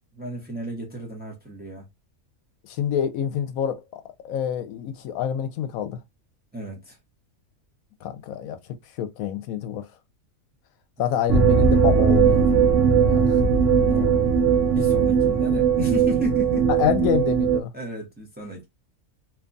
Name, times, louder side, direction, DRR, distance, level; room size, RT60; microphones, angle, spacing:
voice 1, 0.2-1.9 6.5-7.0 11.0-11.1 12.2-12.4 13.9-14.3 14.7-16.7 17.7-18.7, right 1 dB, 10° right, 0.6 m, -33 dB
voice 2, 2.6-3.8 4.2-6.0 8.0-8.6 9.0-9.9 11.0-13.4 16.8-17.7, left 9 dB, 85° left, 1.0 m, -27 dB
sound 1, 11.3-17.6, right 6 dB, 70° right, 0.8 m, -19 dB
2.8 x 2.2 x 2.5 m
omnidirectional pair, 1.4 m